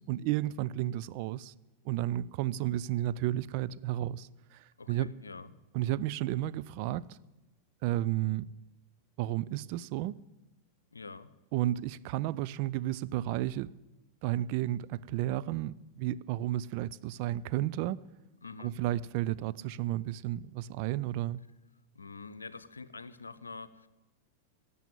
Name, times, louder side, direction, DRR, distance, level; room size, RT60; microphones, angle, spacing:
voice 1, 0.1-1.5 1.9-4.6 4.9-5.1 5.7-7.2 7.8-8.5 9.2-10.2 11.5-13.7 14.2-18.0 18.6-21.4, right 14 dB, 45° right, 0.4 m, -32 dB
voice 2, 4.8-5.6 10.9-11.3 18.4-18.7 21.9-23.9, left 4 dB, 75° left, 0.7 m, -46 dB
17.5 x 7.0 x 9.1 m
figure-of-eight pair, 90°, 0 cm